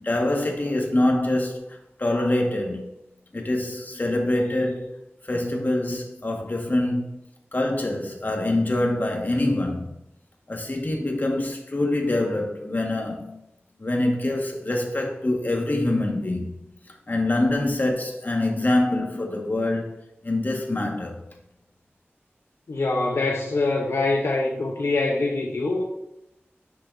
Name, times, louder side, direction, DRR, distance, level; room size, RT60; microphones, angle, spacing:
voice 1, 0.0-2.9 3.3-4.9 5.3-7.2 7.5-10.0 10.5-13.4 13.8-16.6 17.1-21.2, left 1 dB, 45° left, 1.6 m, -25 dB
voice 2, 22.7-25.8, left 3 dB, 80° left, 0.8 m, -24 dB
9.8 x 6.3 x 2.7 m
wide cardioid pair, 70°, 4 cm